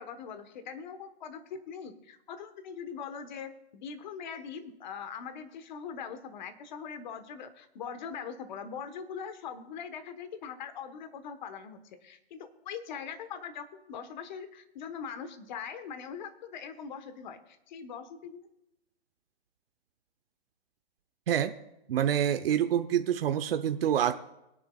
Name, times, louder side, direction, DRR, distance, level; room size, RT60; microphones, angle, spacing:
voice 1, 0.0-18.5, left 7 dB, 45° left, 10 dB, 1.3 m, -42 dB
voice 2, 21.9-24.1, right 10 dB, 60° right, 8 dB, 0.8 m, -26 dB
22.0 x 10.0 x 2.4 m, 0.88 s
hypercardioid pair, 155°, 32 cm